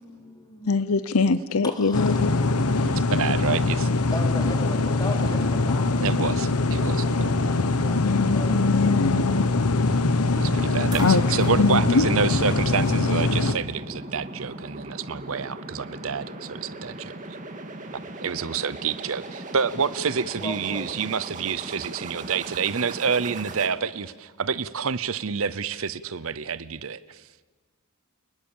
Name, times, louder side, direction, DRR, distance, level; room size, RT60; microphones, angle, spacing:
voice 1, 0.0-1.0 1.6-3.1 4.1-6.1 7.3-9.1 20.4-20.9, left 1 dB, 20° left, 2 dB, 3.5 m, -38 dB
voice 2, 0.7-2.3 8.0-9.9 11.0-11.2 11.6-12.0, left 4 dB, 70° left, 15 dB, 0.7 m, -23 dB
sound 1, 1.9-13.6, left 3 dB, 85° left, 1.2 m, -23 dB
voice 3, 2.8-3.9 6.0-7.3 10.3-17.1 18.2-27.2, right 6 dB, 65° right, 16 dB, 0.7 m, -28 dB
sound 2, 7.2-23.7, right 1 dB, 35° right, 2.1 m, -39 dB
sound 3, 9.9-10.3 10.9-14.1 15.2-15.3, right 2 dB, 20° right, 3.4 m, -42 dB
30.0 x 20.5 x 7.2 m, 1.3 s
head